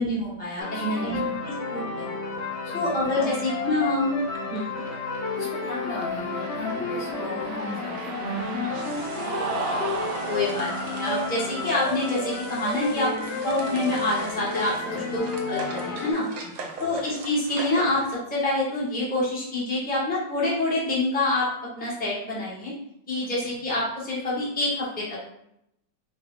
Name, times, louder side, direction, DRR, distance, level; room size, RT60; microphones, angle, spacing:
voice 1, 0.0-2.1 2.7-4.2 4.5-4.7 7.2-7.6 9.1-9.2 10.3-13.1 13.4-16.3 16.8-21.5 21.7-22.7 23.1-25.2, left 2 dB, 5° left, -7 dB, 1.0 m, -27 dB
sound 1, 0.6-16.1, left 3 dB, 60° left, 0.7 m, -31 dB
voice 2, 0.7-1.4 2.6-2.9 3.2-3.4 4.4-4.5 5.3-8.3 14.9-15.2 16.4-16.9 23.2-23.5, left 4 dB, 80° left, -6 dB, 2.2 m, -38 dB
sound 2, 2.9-18.2, right 3 dB, 70° right, 1.2 m, -43 dB
Cheering, 5.9-15.2, right 4 dB, 90° right, 1.4 m, -37 dB
4.7 x 2.2 x 3.6 m, 0.79 s
omnidirectional pair, 1.9 m